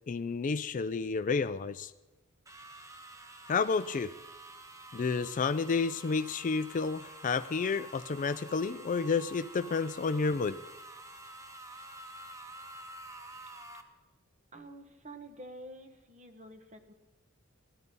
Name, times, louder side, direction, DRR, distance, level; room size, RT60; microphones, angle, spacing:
voice 1, 0.1-1.9 3.5-4.1 4.9-10.6, left 4 dB, 35° left, 13 dB, 0.4 m, -30 dB
sound 1, 2.5-13.8, right 2 dB, 15° right, 1.1 m, -49 dB
voice 2, 14.5-16.9, right 1 dB, 35° right, 7 dB, 1.3 m, -48 dB
15.0 x 13.5 x 5.4 m, 1.1 s
head